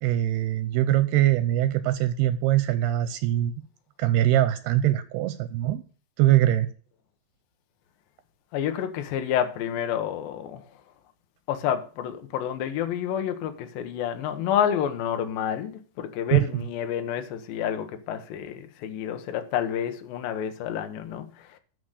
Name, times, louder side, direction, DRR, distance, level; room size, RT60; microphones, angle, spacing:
voice 1, 0.0-3.5 4.0-5.8 6.2-6.7 16.3-16.6, right 13 dB, 80° right, 2.6 m, -22 dB
voice 2, 8.5-10.6 11.5-21.6, left 9 dB, 70° left, 2.5 m, -29 dB
11.5 x 5.2 x 6.4 m
omnidirectional pair, 4.9 m